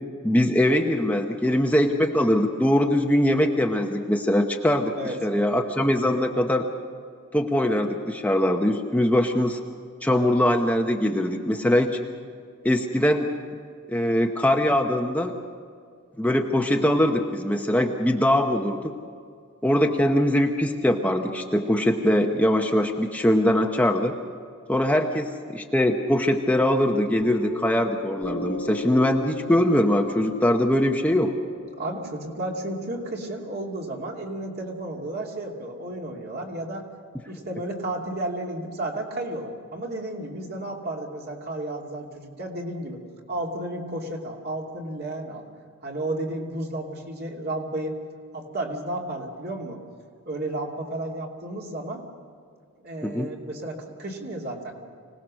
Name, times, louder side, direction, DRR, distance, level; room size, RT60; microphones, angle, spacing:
voice 1, 0.2-6.6 7.3-9.6 10.0-12.0 12.6-13.3 13.9-15.3 16.2-18.9 19.6-24.1 24.7-31.3 53.0-53.3, left 1 dB, 10° left, 3 dB, 0.9 m, -22 dB
voice 2, 5.0-5.6 31.8-36.8 37.3-43.0 43.3-45.4 45.8-48.0 48.3-49.8 50.3-52.0 52.8-54.7, right 1 dB, 50° right, 0 dB, 2.8 m, -32 dB
Piano, 27.2-34.3, left 2 dB, 75° left, 1.3 m, -38 dB
25.5 x 18.5 x 6.4 m, 2.2 s
head